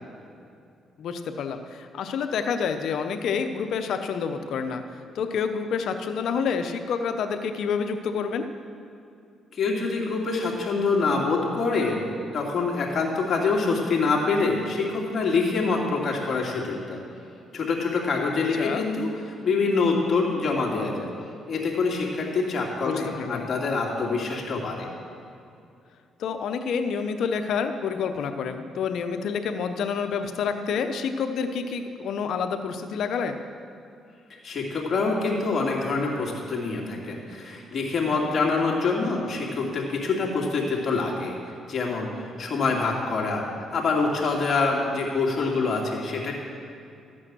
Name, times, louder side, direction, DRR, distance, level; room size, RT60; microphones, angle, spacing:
voice 1, 1.0-8.5 18.6-18.8 23.2-23.5 26.2-33.4, left 6 dB, 70° left, 7 dB, 0.8 m, -28 dB
voice 2, 9.5-12.1 12.3-17.0 17.5-21.1 21.5-24.9 34.4-41.3 41.7-43.4 43.7-46.3, left 4 dB, 45° left, -2 dB, 2.6 m, -25 dB
13.5 x 8.6 x 6.2 m, 2.5 s
cardioid pair, 90°, 0 cm